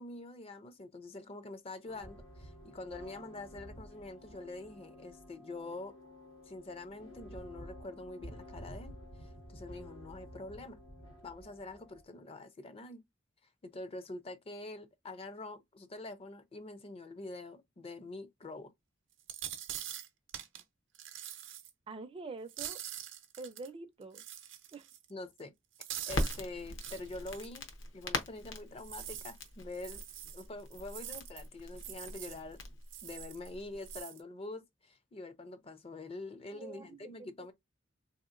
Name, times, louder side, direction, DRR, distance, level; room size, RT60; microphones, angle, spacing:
voice 1, 0.0-6.0 6.4-10.8 11.2-13.0 13.6-18.7 25.1-25.5 26.1-27.7 27.9-30.0 30.3-32.6 33.0-37.5, left 2 dB, 30° left, 0.4 m, -45 dB
sound 1, 1.9-12.0, equal, 90° left, 1.3 m, -51 dB
sound 2, 19.2-20.6 20.9-21.7 22.5-23.7 24.1-25.1 25.4-25.5 25.8-26.4 26.8-27.5 28.8-31.5 31.7-32.4 32.9-33.5 33.8-34.2, right 11 dB, 75° right, 0.6 m, -44 dB
voice 2, 21.9-22.8 23.4-24.2 24.7-24.9 36.5-37.3, right 3 dB, 30° right, 0.4 m, -46 dB
Crackle, 26.1-34.0, left 2 dB, 75° left, 0.8 m, -41 dB
3.5 x 2.8 x 2.5 m
head